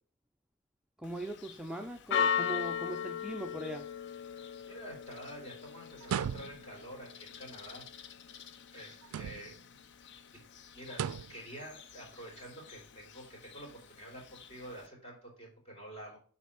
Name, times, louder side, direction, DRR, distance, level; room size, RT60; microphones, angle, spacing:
Church bell, 1.0-14.9, left 7 dB, 55° left, 0.6 m, -40 dB
voice 1, 1.0-3.9, right 1 dB, 5° right, 2 dB, 0.5 m, -40 dB
voice 2, 4.7-7.8 8.7-9.7 10.7-11.0 11.3-16.2, right 1 dB, 30° left, -1 dB, 3.3 m, -48 dB
sound 1, 6.0-6.8 9.0-9.7 10.9-11.4, right 8 dB, 85° right, 0.3 m, -37 dB
7.0 x 4.3 x 4.7 m, 0.43 s
head